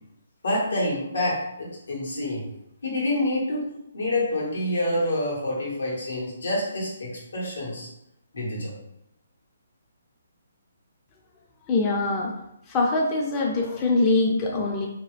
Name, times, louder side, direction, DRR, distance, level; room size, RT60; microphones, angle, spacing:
voice 1, 0.4-2.4 2.8-3.7 3.9-7.9 8.3-8.7, left 1 dB, 85° left, -5 dB, 1.5 m, -27 dB
voice 2, 11.7-12.3 12.7-14.9, left 2 dB, 20° left, -1 dB, 0.3 m, -23 dB
2.9 x 2.2 x 3.1 m, 0.82 s
hypercardioid pair, 160°, 0 cm